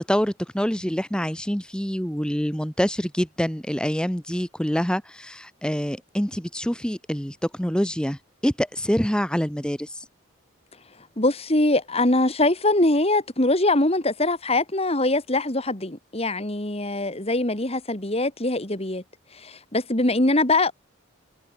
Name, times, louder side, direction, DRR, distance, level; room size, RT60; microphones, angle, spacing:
voice 1, 0.0-10.1, equal, 5° left, 1.2 m, -26 dB
voice 2, 11.2-19.0 19.4-20.7, left 2 dB, 30° left, 2.6 m, -22 dB
head